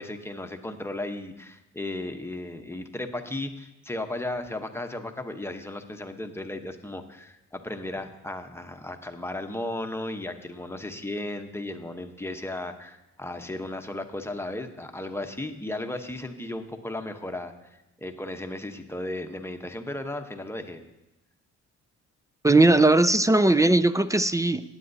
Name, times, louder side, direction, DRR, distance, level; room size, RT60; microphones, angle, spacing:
voice 1, 0.0-20.8, left 1 dB, 10° left, 6 dB, 0.9 m, -35 dB
voice 2, 22.4-24.6, right 2 dB, 10° right, 14 dB, 0.3 m, -19 dB
17.5 x 8.8 x 2.7 m, 0.94 s
cardioid pair, 90°, 30 cm